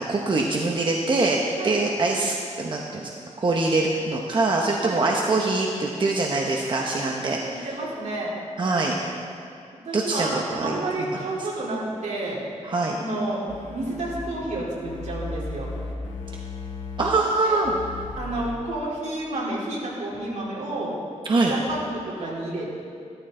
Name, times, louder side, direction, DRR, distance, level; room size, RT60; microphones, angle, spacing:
voice 1, 0.0-3.1 3.4-7.7 8.6-9.0 9.9-11.5 12.6-13.0 17.0-17.7 21.2-21.5, right 2 dB, 40° right, 0 dB, 1.0 m, -24 dB
voice 2, 7.5-8.3 9.8-12.4 12.9-13.4 13.7-15.7 17.4-17.6 18.2-20.9 21.5-22.8, right 2 dB, 75° right, -5 dB, 3.4 m, -30 dB
sound 1, 13.5-14.2 14.8-17.1 17.6-18.5, left 3 dB, 80° left, 2.2 m, -35 dB
14.5 x 13.5 x 3.8 m, 2.5 s
wide cardioid pair, 125°, 12 cm